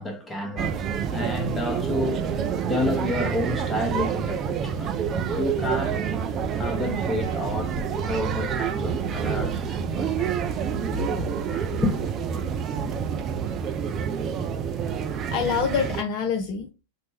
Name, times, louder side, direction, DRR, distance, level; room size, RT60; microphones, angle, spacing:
voice 1, 0.0-2.3 2.6-6.2 6.5-10.7 11.8-12.2, left 1 dB, 10° left, 0.8 m, -30 dB
sound 1, 0.6-16.0, right 7 dB, 30° right, 0.4 m, -28 dB
Wind instrument woodwind instrument, 5.3-9.5, right 1 dB, 75° right, 0.9 m, -50 dB
voice 2, 10.7-11.6 15.3-16.7, left 7 dB, 40° left, 0.4 m, -28 dB
4.3 x 2.1 x 3.2 m
figure-of-eight pair, 90°, 0 cm